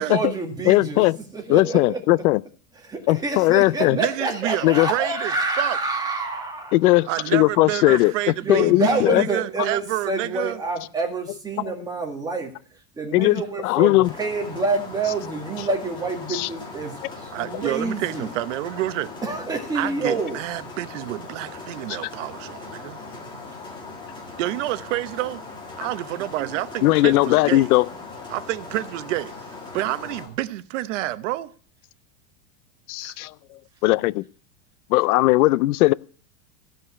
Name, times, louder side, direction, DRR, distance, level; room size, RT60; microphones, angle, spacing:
voice 1, 0.0-1.0 1.3-2.0 2.8-7.0 8.4-12.5 13.0-18.3 19.2-20.4, right 3 dB, 10° right, 1.8 m, -27 dB
voice 2, 0.7-1.2 1.5-2.4 3.1-4.0 4.6-4.9 6.7-8.1 8.5-9.3 11.6-11.7 13.1-14.1 16.3-16.5 21.9-22.0 26.8-27.9 32.9-33.3 33.8-34.2 34.9-35.9, left 19 dB, 70° left, 0.6 m, -18 dB
voice 3, 3.9-5.8 7.1-10.6 17.3-19.1 19.7-23.0 24.4-25.4 25.8-27.7 28.3-29.3 29.7-31.5 33.0-33.1, right 16 dB, 50° right, 0.8 m, -29 dB
sound 1, 14.0-30.3, left 3 dB, 10° left, 2.0 m, -39 dB
15.5 x 5.3 x 9.7 m
supercardioid pair, 175°, 46 cm